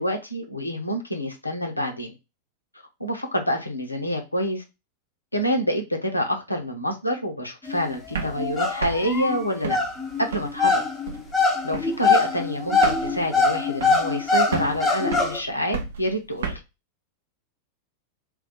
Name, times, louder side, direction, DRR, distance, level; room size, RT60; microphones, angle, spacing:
voice 1, 0.0-2.1 3.0-4.6 5.3-9.8 10.2-10.8 11.6-16.6, equal, 85° left, 0.6 m, -27 dB
sound 1, 7.6-15.4, left 4 dB, 10° left, 0.8 m, -24 dB
sound 2, 8.1-10.7 11.1-11.4 11.7-12.1 12.4-12.5 12.7-14.2 14.5-16.6, right 5 dB, 65° right, 0.6 m, -33 dB
2.5 x 2.2 x 4.0 m
figure-of-eight pair, 90°, 0 cm